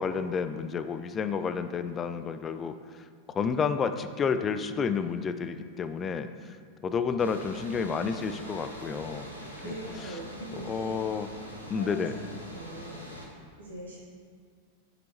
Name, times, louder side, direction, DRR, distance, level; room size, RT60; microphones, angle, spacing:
voice 1, 0.0-2.7 3.3-6.6 6.8-9.3 9.6-9.8 10.0-10.2 10.5-11.3 11.7-12.1, left 6 dB, 25° left, 10 dB, 0.3 m, -30 dB
sound 1, 7.2-13.3, equal, 85° right, 1.0 m, -43 dB
voice 2, 9.6-11.1 11.7-12.0 12.5-13.0 13.6-14.0, right 1 dB, 70° right, -5 dB, 1.3 m, -41 dB
8.9 x 5.1 x 3.0 m, 2.1 s
figure-of-eight pair, 90°, 0 cm